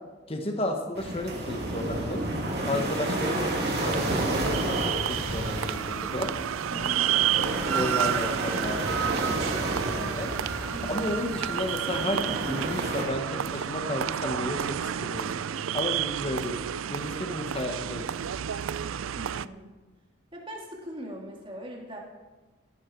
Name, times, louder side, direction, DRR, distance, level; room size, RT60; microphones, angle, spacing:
voice 1, 0.3-2.2 2.7-6.3 7.7-10.3 10.9-15.3 15.7-16.6 16.9-18.1, left 1 dB, 30° left, 4 dB, 1.3 m, -33 dB
sound 1, 0.9-13.0, right 1 dB, 55° right, 2.9 m, -31 dB
sound 2, 3.9-19.5, right 9 dB, 90° right, 0.4 m, -31 dB
voice 2, 6.7-7.0 10.7-11.0 19.2-19.7 20.3-22.0, equal, 25° right, -1 dB, 2.8 m, -41 dB
18.0 x 11.5 x 4.7 m, 1.3 s
head